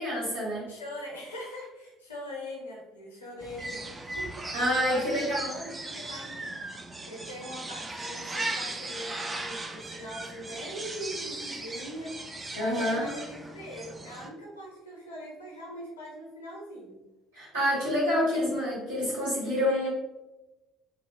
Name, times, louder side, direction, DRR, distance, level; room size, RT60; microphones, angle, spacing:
voice 1, 0.0-0.6 4.5-5.5 12.5-13.0 17.3-19.9, equal, 80° right, -10 dB, 1.2 m, -27 dB
voice 2, 0.6-6.4 7.0-12.2 12.5-17.0 18.3-18.5 19.1-19.9, equal, 80° left, -3 dB, 0.5 m, -42 dB
sound 1, 3.4-14.3, right 2 dB, 25° right, 0.3 m, -38 dB
2.5 x 2.0 x 2.5 m, 1.0 s
figure-of-eight pair, 50°, 0 cm